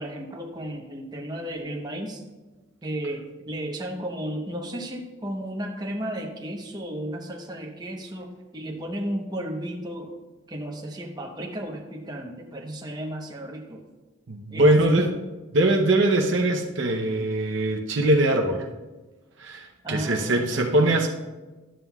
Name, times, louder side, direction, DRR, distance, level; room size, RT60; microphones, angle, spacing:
voice 1, 0.0-2.2 2.8-10.1 10.5-13.8 14.5-15.1 19.8-21.1, right 1 dB, 20° right, 0 dB, 0.8 m, -34 dB
voice 2, 14.3-15.1 15.5-18.7 19.4-21.1, right 1 dB, 60° right, 2 dB, 0.7 m, -22 dB
11.0 x 7.5 x 2.3 m, 1.2 s
head